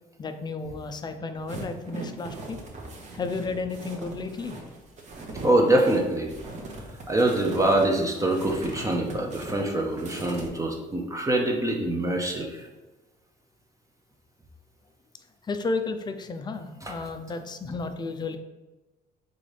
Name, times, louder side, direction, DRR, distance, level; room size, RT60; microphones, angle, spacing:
voice 1, 0.2-2.6 3.1-4.6 15.5-18.4, left 3 dB, 25° left, 8 dB, 0.4 m, -32 dB
sound 1, 1.5-10.5, right 2 dB, 45° right, 0.9 m, -40 dB
voice 2, 5.4-6.3 7.1-12.7 16.8-17.0, right 1 dB, 20° right, 1 dB, 0.6 m, -24 dB
3.9 x 3.8 x 3.3 m, 1.1 s
cardioid pair, 110°, 17 cm